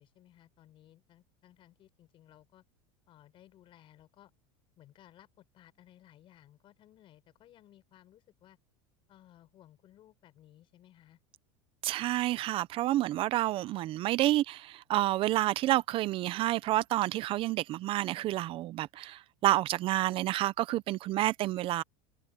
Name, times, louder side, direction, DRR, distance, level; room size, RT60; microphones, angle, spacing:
voice 1, 0.0-2.6 3.1-4.3 4.8-8.6 9.1-11.2, left 12 dB, 40° left, 5.4 m, -59 dB
voice 2, 11.8-21.8, right 15 dB, 40° right, 0.6 m, -29 dB
supercardioid pair, 135°, 14 cm